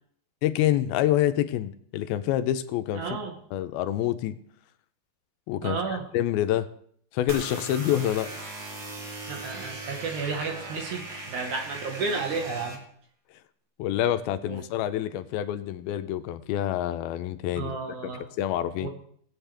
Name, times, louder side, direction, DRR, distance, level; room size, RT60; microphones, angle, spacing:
voice 1, 0.4-3.2 3.5-4.4 5.5-6.7 7.1-8.3 13.8-17.8 18.0-18.1 18.4-18.9, left 12 dB, 80° left, 10 dB, 2.4 m, -27 dB
voice 2, 2.9-3.4 5.6-6.0 9.3-12.8 14.5-14.6 17.6-18.2 18.8-18.9, right 4 dB, 65° right, 3 dB, 2.3 m, -32 dB
sound 1, 7.3-12.8, right 2 dB, 80° right, 0.9 m, -38 dB
19.5 x 8.0 x 3.3 m, 0.62 s
omnidirectional pair, 4.4 m